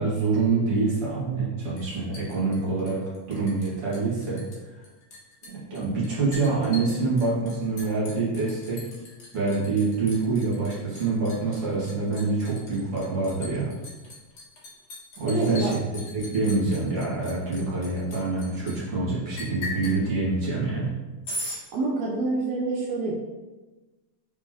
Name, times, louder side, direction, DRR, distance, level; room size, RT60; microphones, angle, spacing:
voice 1, 0.0-3.0 3.3-4.4 5.7-8.8 9.3-13.7 15.2-15.8 16.1-20.9, right 3 dB, 45° right, -8 dB, 2.9 m, -26 dB
Liquid, 1.8-3.7 3.9-4.6 4.8-18.7 19.4-20.0 21.2-21.6, left 2 dB, 50° left, 1.3 m, -39 dB
voice 2, 15.3-15.7 21.7-23.2, right 2 dB, 70° right, -4 dB, 1.6 m, -27 dB
6.4 x 5.2 x 3.0 m, 1.2 s
omnidirectional pair, 4.0 m